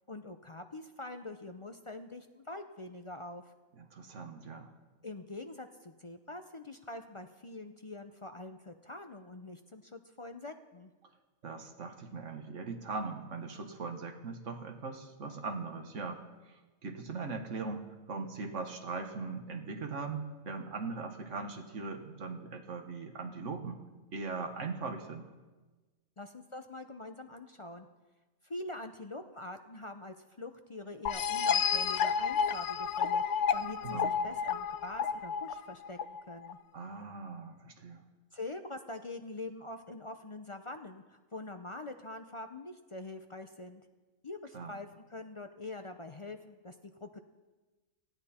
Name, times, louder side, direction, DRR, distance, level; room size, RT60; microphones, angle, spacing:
voice 1, 0.1-3.5 5.0-10.9 26.2-27.9 28.4-36.6 38.3-43.8 44.2-47.2, left 2 dB, 40° left, 7 dB, 0.4 m, -44 dB
voice 2, 3.8-4.7 11.4-16.2 16.5-16.6 16.8-23.8 24.1-25.3 33.8-34.1 36.7-38.0 44.5-44.7, right 4 dB, 60° right, 5 dB, 1.7 m, -40 dB
sound 1, 31.1-36.5, left 6 dB, 65° left, 0.9 m, -31 dB
18.5 x 14.0 x 4.3 m, 1.2 s
omnidirectional pair, 1.4 m